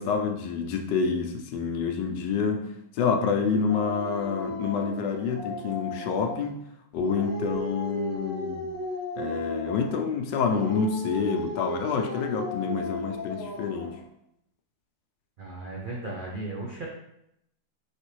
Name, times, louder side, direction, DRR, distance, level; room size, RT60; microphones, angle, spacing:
voice 1, 0.0-2.7 2.9-6.5 6.9-8.7 9.2-13.9, left 5 dB, 90° left, 4 dB, 1.3 m, -28 dB
Dog, 3.7-6.5 6.9-10.0 10.4-14.0, left 1 dB, 10° left, 0.7 m, -35 dB
voice 2, 15.4-16.9, right 2 dB, 75° right, -3 dB, 0.4 m, -35 dB
5.0 x 3.3 x 3.1 m, 0.78 s
omnidirectional pair, 1.8 m